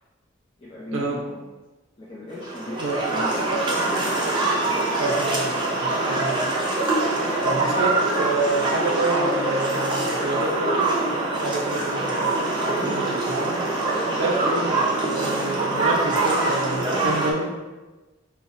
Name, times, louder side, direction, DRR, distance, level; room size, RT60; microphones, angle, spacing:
voice 1, 0.6-1.4 2.0-3.7 12.8-13.2, left 1 dB, 30° left, -7 dB, 0.5 m, -37 dB
sound 1, 2.4-17.3, right 2 dB, 25° right, 0.5 m, -24 dB
voice 2, 5.0-6.4 7.2-10.9 11.4-13.6 13.9-14.9 15.1-17.5, right 2 dB, 80° right, -2 dB, 0.4 m, -28 dB
5.4 x 2.0 x 2.5 m, 1.2 s
head